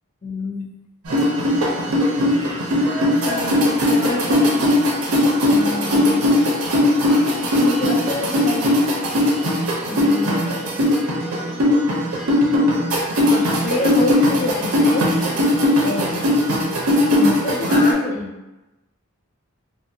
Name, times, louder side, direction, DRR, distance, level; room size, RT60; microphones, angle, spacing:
voice 1, 0.2-0.7 3.2-4.6 5.5-6.3 7.6-8.9 9.9-10.7 13.3-15.1 15.8-16.2 17.1-18.3, left 2 dB, 30° left, 0 dB, 0.3 m, -27 dB
sound 1, 1.1-17.9, left 1 dB, 70° right, 0.6 m, -19 dB
2.5 x 2.5 x 2.5 m, 1.0 s
head